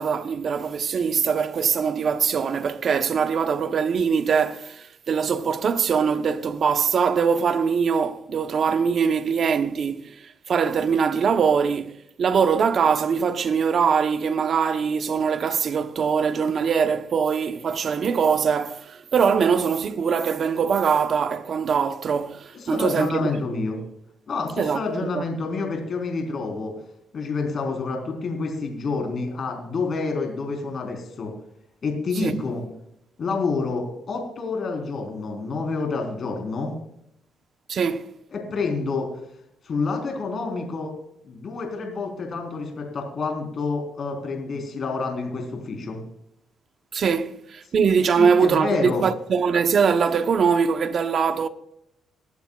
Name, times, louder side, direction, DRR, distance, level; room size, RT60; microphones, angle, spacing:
voice 1, 0.0-23.3 24.6-25.2 32.1-32.3 37.7-38.1 46.9-51.5, right 6 dB, 55° right, 1.0 m, -22 dB
voice 2, 22.5-23.8 24.3-26.7 27.1-31.3 31.8-32.6 33.2-36.7 38.3-39.1 39.6-40.9 41.2-46.0 48.1-49.0, left 4 dB, 50° left, 4.1 m, -28 dB
21.0 x 11.5 x 2.4 m
cardioid pair, 90°, 0 cm